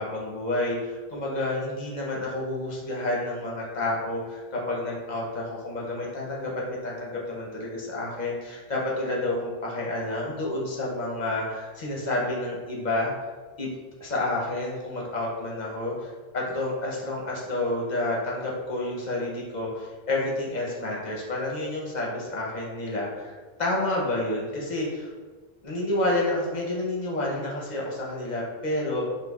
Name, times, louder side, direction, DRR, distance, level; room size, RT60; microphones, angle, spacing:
voice 1, 0.0-13.1 13.6-13.7 14.0-25.1 25.6-29.1, left 2 dB, 50° left, -3 dB, 0.8 m, -29 dB
5.0 x 2.4 x 2.3 m, 1.4 s
omnidirectional pair, 1.1 m